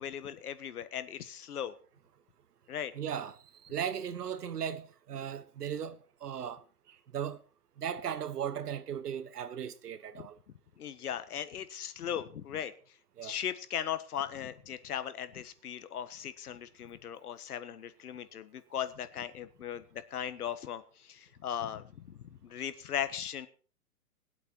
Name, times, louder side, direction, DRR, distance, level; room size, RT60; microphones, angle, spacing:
voice 1, 0.0-1.8 2.7-2.9 10.1-10.2 10.8-12.7 13.2-23.5, left 9 dB, 75° left, 1.5 m, -38 dB
voice 2, 2.9-6.6 7.1-7.4 7.8-10.4 13.2-13.4, right 8 dB, 85° right, 1.4 m, -37 dB
20.5 x 8.2 x 4.6 m
hypercardioid pair, 165°, 46 cm